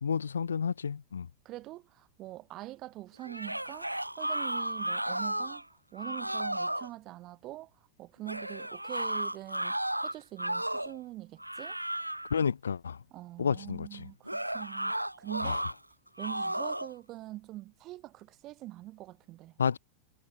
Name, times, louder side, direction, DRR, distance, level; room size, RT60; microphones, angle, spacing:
voice 1, 0.0-1.3 12.3-13.0 13.4-13.9 15.4-15.6 19.6-19.8, left 6 dB, 70° left, 1.8 m, -30 dB
voice 2, 1.4-11.8 13.1-15.6 16.2-19.6, right 17 dB, 35° right, 4.1 m, -44 dB
sound 1, 3.2-5.6 6.0-6.9 8.3-11.0 11.4-12.4 14.3-15.7 16.2-16.9, right 1 dB, 85° right, 0.6 m, -34 dB
figure-of-eight pair, 90°, 0 cm